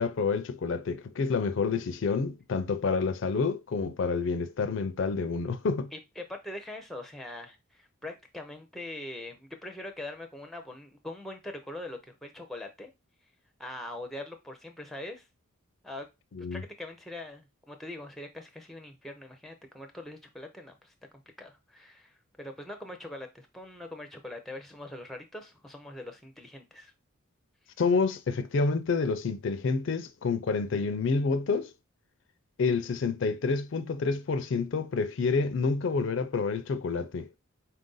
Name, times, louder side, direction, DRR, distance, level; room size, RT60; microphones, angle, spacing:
voice 1, 0.0-5.9 16.3-16.6 27.8-31.7 32.6-37.3, left 4 dB, 60° left, 0.4 m, -28 dB
voice 2, 5.9-12.9 13.6-15.3 15.8-16.1 16.5-20.9 21.4-26.9, left 1 dB, ahead, 0.5 m, -42 dB
4.2 x 2.6 x 3.8 m
head